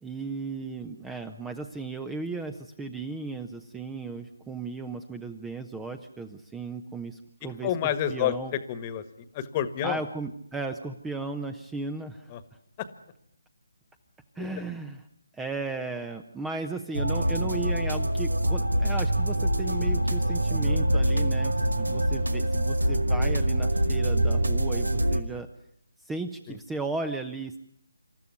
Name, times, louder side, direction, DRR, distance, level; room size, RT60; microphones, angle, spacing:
voice 1, 0.0-7.7 8.1-8.5 9.8-12.3 14.4-15.0 15.3-25.5 26.0-27.6, right 3 dB, 5° right, 10 dB, 0.8 m, -35 dB
voice 2, 7.6-9.0 9.3-10.0 12.3-12.4 14.4-14.5 26.5-26.6, left 10 dB, 25° left, 12 dB, 1.6 m, -29 dB
sound 1, 16.9-25.2, right 1 dB, 85° right, 1.9 m, -25 dB
27.0 x 13.5 x 9.5 m, 0.69 s
figure-of-eight pair, 150°, 0 cm